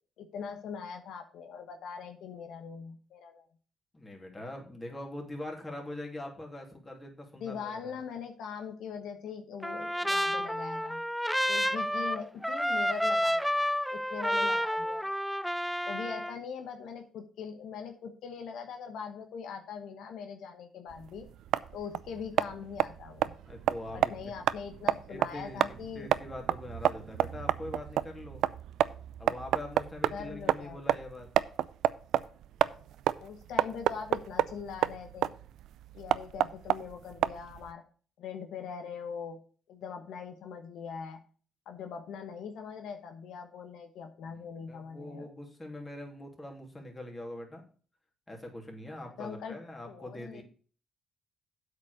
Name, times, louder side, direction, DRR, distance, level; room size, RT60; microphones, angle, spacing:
voice 1, 0.2-3.5 7.4-11.0 11.4-15.2 15.9-21.3 21.7-23.4 23.9-26.1 30.1-30.8 33.2-35.4 35.9-37.8 38.2-39.4 39.7-41.2 41.7-45.3 49.0-49.6 49.9-50.4, left 6 dB, 80° left, 6 dB, 1.1 m, -41 dB
voice 2, 3.9-7.9 23.5-24.3 25.1-28.4 29.2-31.3 44.3-47.6 48.3-50.4, left 1 dB, 20° left, 1 dB, 3.0 m, -43 dB
Trumpet, 9.6-16.4, equal, ahead, 0.4 m, -30 dB
sound 1, 20.9-37.7, right 11 dB, 80° right, 0.4 m, -30 dB
8.2 x 5.0 x 6.5 m, 0.41 s
cardioid pair, 90°, 0 cm